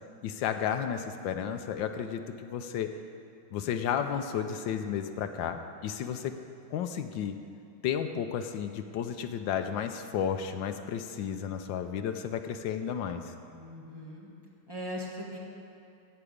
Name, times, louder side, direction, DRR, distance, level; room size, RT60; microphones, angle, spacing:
voice 1, 0.2-2.9 3.5-6.4 6.7-7.4 7.8-13.3, left 8 dB, 75° left, 7 dB, 1.2 m, -32 dB
voice 2, 13.4-14.3 14.7-15.4, equal, 15° right, -4 dB, 1.5 m, -40 dB
14.5 x 4.9 x 8.6 m, 2.7 s
omnidirectional pair, 2.3 m